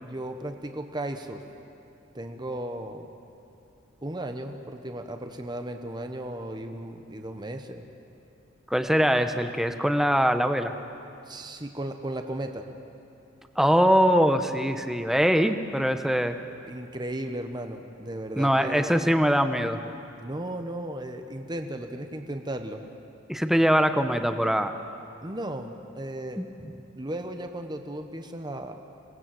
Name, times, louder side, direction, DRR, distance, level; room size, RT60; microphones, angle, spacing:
voice 1, 0.0-1.4 2.1-3.1 4.0-7.8 11.3-12.7 14.6-14.7 16.6-19.0 20.2-22.9 25.2-26.4 26.9-28.8, right 1 dB, 20° right, 5 dB, 1.1 m, -35 dB
voice 2, 8.7-10.7 13.6-16.4 18.4-19.8 23.3-24.7 26.4-26.5, equal, ahead, 7 dB, 0.9 m, -22 dB
26.5 x 19.0 x 7.7 m, 2.7 s
head